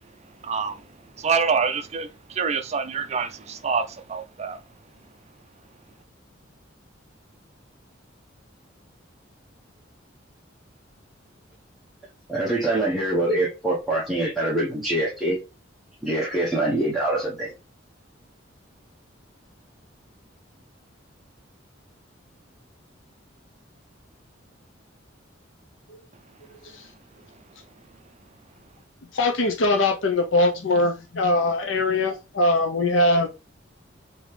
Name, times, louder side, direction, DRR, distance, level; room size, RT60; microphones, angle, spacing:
voice 1, 0.4-0.8 1.2-4.6, right 5 dB, 35° right, 0.5 m, -26 dB
voice 2, 12.3-15.4 16.0-17.5, right 1 dB, ahead, 0.9 m, -24 dB
voice 3, 29.1-33.3, left 2 dB, 80° left, 0.7 m, -22 dB
5.1 x 2.9 x 3.2 m
head